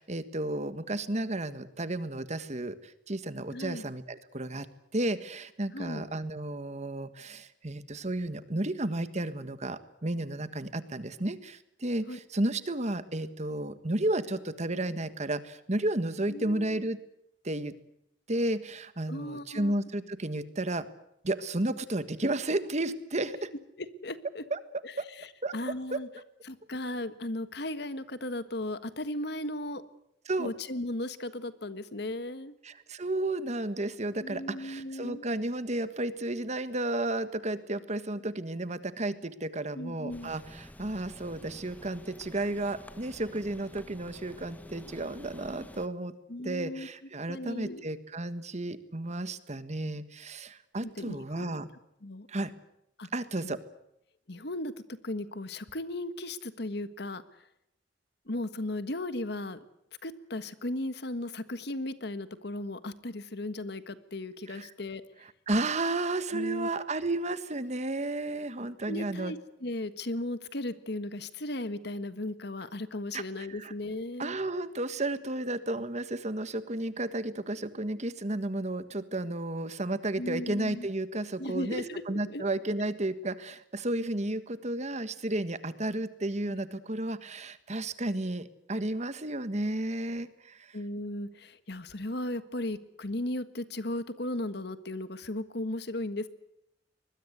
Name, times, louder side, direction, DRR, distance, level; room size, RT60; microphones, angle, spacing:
voice 1, 0.0-4.7 4.9-17.0 17.4-17.7 18.3-20.9 21.2-23.5 24.5-24.6 25.0-25.1 25.4-25.5 25.9-26.0 30.3-30.5 32.6-46.1 46.4-51.7 52.3-52.5 53.1-53.6 64.5-64.7 65.5-69.3 73.1-73.7 74.2-90.8, right 2 dB, 40° right, 12 dB, 1.6 m, -32 dB
voice 2, 3.5-3.9 5.7-6.1 12.1-12.2 16.3-16.9 19.1-19.7 23.8-24.4 24.8-24.9 25.2-25.3 25.5-26.1 26.5-29.8 30.4-32.5 34.2-35.2 39.7-40.3 46.3-46.9 47.3-47.9 50.8-51.6 52.0-52.3 53.0-53.1 53.4-53.6 54.3-57.2 58.3-59.6 60.0-65.0 66.3-66.7 68.9-74.4 80.2-80.9 81.4-82.4 90.7-96.3, left 1 dB, 65° left, 13 dB, 1.6 m, -36 dB
sound 1, 40.1-45.9, left 1 dB, 10° left, 1.1 m, -49 dB
24.0 x 21.0 x 8.1 m, 0.80 s
head